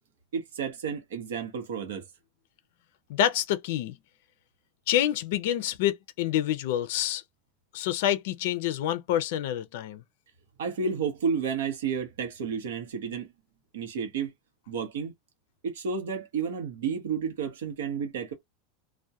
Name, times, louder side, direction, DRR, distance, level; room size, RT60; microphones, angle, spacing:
voice 1, 0.3-2.0 10.6-13.3 13.7-14.3 14.7-15.1 15.6-18.3, right 6 dB, 90° right, 0.7 m, -31 dB
voice 2, 3.1-4.0 4.9-7.2 7.7-10.0, left 11 dB, 70° left, 0.4 m, -27 dB
2.2 x 2.1 x 2.7 m
supercardioid pair, 125°, 0 cm